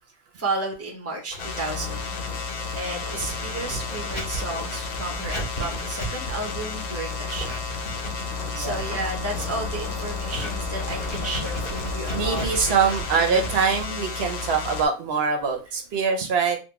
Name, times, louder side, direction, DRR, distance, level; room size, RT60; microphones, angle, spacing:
voice 1, 0.4-2.0 2.5-7.6 8.2-12.7 13.1-13.4, right 2 dB, 15° right, 2 dB, 0.7 m, -33 dB
Writing, 1.3-16.0, right 1 dB, 55° left, 1.9 m, -37 dB
sound 1, 1.4-14.9, left 5 dB, 75° left, 0.9 m, -32 dB
sound 2, 3.0-6.1 6.4-6.6 7.0-7.1 8.9-13.8 14.1-14.3 14.7-14.8, left 2 dB, 25° left, 0.3 m, -42 dB
voice 2, 8.5-8.9 12.1-16.6, right 5 dB, 70° right, 4 dB, 0.9 m, -24 dB
3.6 x 2.2 x 2.8 m, 0.30 s
omnidirectional pair, 1.1 m